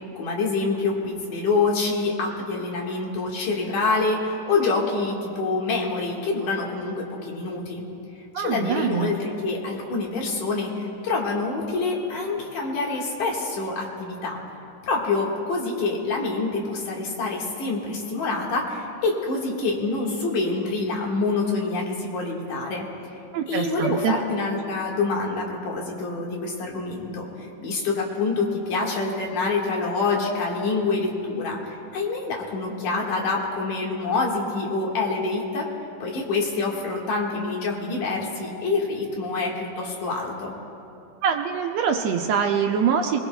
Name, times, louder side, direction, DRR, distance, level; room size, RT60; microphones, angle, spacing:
voice 1, 0.2-7.8 8.4-14.4 14.8-22.9 23.5-35.7 36.0-40.5, left 3 dB, 85° left, -2 dB, 3.3 m, -26 dB
voice 2, 8.3-9.1 23.3-24.1 41.2-43.2, right 7 dB, 75° right, 3 dB, 1.6 m, -24 dB
22.5 x 21.0 x 2.3 m, 2.8 s
omnidirectional pair, 3.5 m